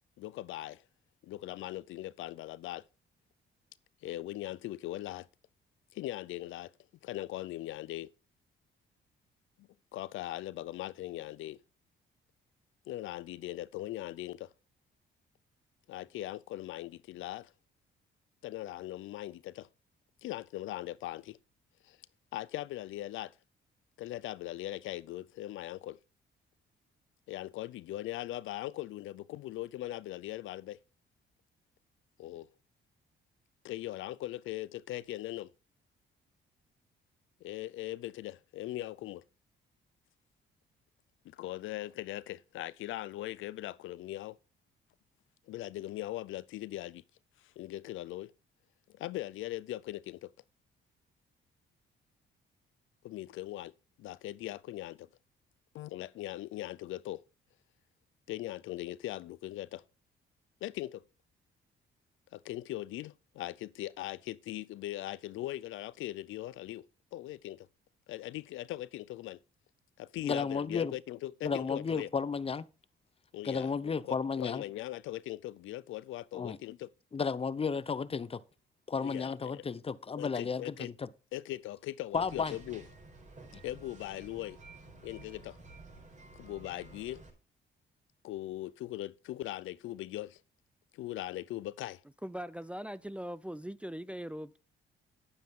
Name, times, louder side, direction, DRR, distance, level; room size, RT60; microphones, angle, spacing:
voice 1, 0.2-0.8 1.2-2.8 4.0-5.3 5.9-6.7 7.0-8.1 9.6-11.6 12.9-14.5 15.9-17.5 18.4-19.7 20.2-21.4 21.8-22.0 22.3-23.3 24.0-26.0 27.3-30.8 32.2-32.5 33.6-35.5 37.4-39.2 41.2-44.4 45.5-47.0 47.4-48.3 48.9-50.3 53.0-53.7 54.0-55.1 55.7-57.2 58.3-59.8 60.6-61.0 62.3-66.9 67.1-67.7 68.1-69.4 70.0-72.1 73.3-76.9 79.0-79.6 80.2-80.9 81.3-82.8 83.6-84.6 85.0-85.6 86.3-87.2 88.2-90.4 90.9-92.0, left 15 dB, 80° left, 0.5 m, -40 dB
voice 2, 70.2-70.9 71.4-72.7 73.4-74.6 76.3-76.6 77.1-78.4 78.9-81.1 82.1-82.6 83.5-83.6, left 5 dB, 30° left, 0.7 m, -33 dB
sound 1, 82.1-87.3, right 3 dB, 40° right, 4.6 m, -52 dB
voice 3, 92.2-94.6, equal, 5° right, 0.4 m, -40 dB
10.0 x 9.3 x 3.7 m
cardioid pair, 90°, 20 cm